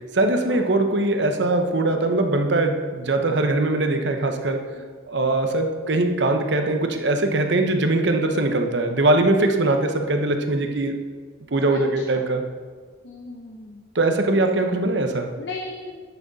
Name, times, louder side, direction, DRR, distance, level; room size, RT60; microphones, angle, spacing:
voice 1, 0.1-4.7 5.1-11.0 11.5-12.4 13.9-15.3, right 2 dB, 65° right, 5 dB, 0.8 m, -21 dB
voice 2, 11.6-12.2 13.0-13.8 15.3-16.0, left 2 dB, 60° left, 0 dB, 0.7 m, -37 dB
10.5 x 6.3 x 4.1 m, 1.5 s
head